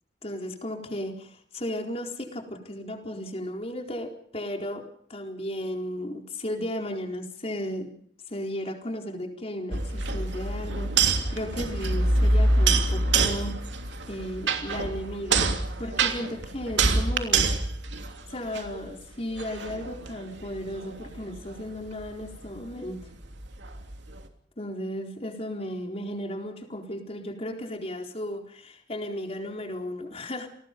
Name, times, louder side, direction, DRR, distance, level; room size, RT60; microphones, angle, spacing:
voice 1, 0.2-8.0 8.3-13.5 14.1-15.5 15.8-17.5 18.3-23.0 24.6-30.5, equal, 35° left, 2 dB, 4.3 m, -35 dB
sound 1, 9.7-18.9 19.4-24.3, right 3 dB, 80° right, 3.0 m, -26 dB
30.0 x 20.0 x 5.4 m, 0.63 s
head